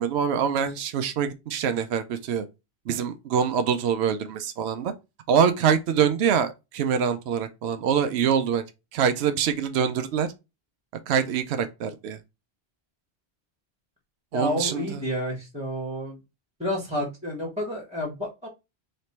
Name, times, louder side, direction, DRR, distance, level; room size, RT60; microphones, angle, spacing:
voice 1, 0.0-2.5 2.9-4.9 5.3-8.6 8.9-10.3 11.1-12.2 14.3-15.0, right 7 dB, 80° right, 0.8 m, -24 dB
voice 2, 14.3-16.2 16.6-18.5, left 1 dB, 5° right, 1.2 m, -30 dB
3.2 x 2.9 x 4.1 m
omnidirectional pair, 1.1 m